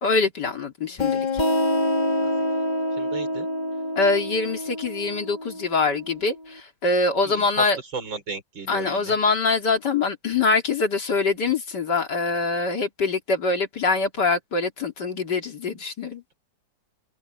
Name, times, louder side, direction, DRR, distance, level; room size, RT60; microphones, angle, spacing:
voice 1, 0.0-1.3 4.0-7.8 8.7-16.2, left 4 dB, 60° left, 3.2 m, -24 dB
sound 1, 1.0-6.3, left 1 dB, 25° left, 1.4 m, -26 dB
voice 2, 3.0-3.5 7.2-7.4 7.9-9.1, right 5 dB, 75° right, 5.3 m, -34 dB
omnidirectional pair, 2.1 m